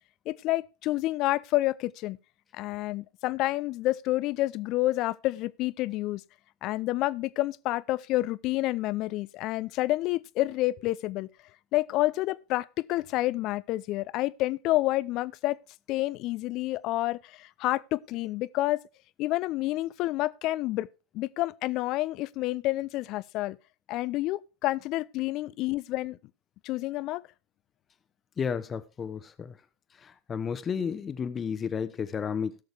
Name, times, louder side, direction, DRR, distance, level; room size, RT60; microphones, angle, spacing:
voice 1, 0.3-2.2 2.5-6.2 6.6-11.3 11.7-15.6 15.9-18.8 19.2-20.9 21.1-23.6 23.9-26.2 26.6-27.2, left 17 dB, 50° left, 0.5 m, -29 dB
voice 2, 28.4-29.6 30.0-32.6, left 6 dB, 30° left, 1.0 m, -32 dB
17.0 x 6.5 x 3.4 m
hypercardioid pair, 85°, 0 cm